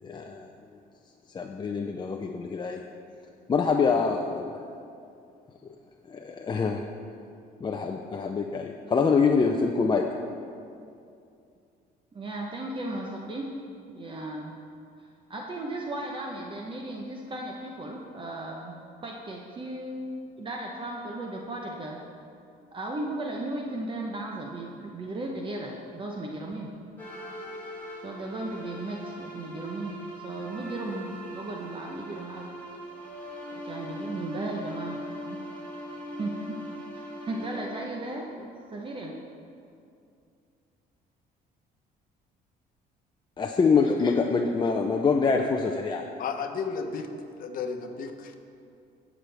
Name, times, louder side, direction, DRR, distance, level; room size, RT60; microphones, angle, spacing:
voice 1, 0.0-0.5 1.3-2.8 3.5-4.6 5.6-5.7 6.1-6.8 7.6-10.0 43.4-46.0, left 5 dB, 25° left, 2 dB, 0.5 m, -25 dB
voice 2, 12.1-13.5 13.9-14.5 15.0-18.7 19.0-22.0 22.7-26.7 28.0-32.5 33.6-35.0 35.2-35.4 36.2-36.6 36.9-39.1 43.8-43.9, right 2 dB, 30° right, 0 dB, 0.9 m, -36 dB
sound 1, 27.0-38.8, equal, 10° left, 2.5 m, -41 dB
voice 3, 46.2-47.1 47.4-48.4, left 5 dB, 55° left, 6 dB, 1.0 m, -33 dB
17.0 x 6.1 x 3.4 m, 2.5 s
cardioid pair, 110°, 17 cm